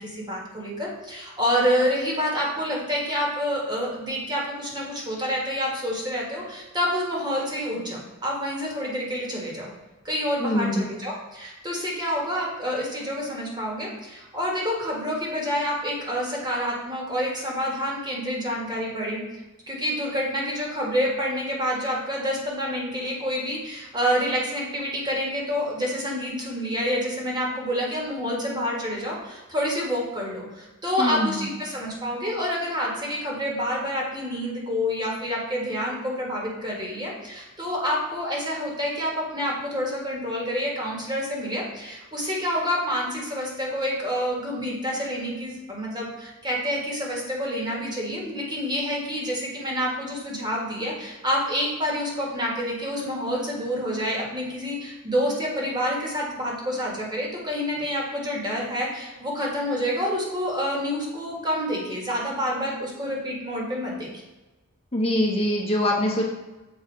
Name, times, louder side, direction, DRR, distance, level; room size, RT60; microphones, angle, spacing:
voice 1, 0.0-9.7 10.0-19.2 19.7-64.1, equal, 20° right, -3 dB, 1.8 m, -28 dB
voice 2, 10.4-10.8 31.0-31.3 64.9-66.2, left 1 dB, 30° left, -2 dB, 1.0 m, -23 dB
7.3 x 4.2 x 4.7 m, 1.1 s
head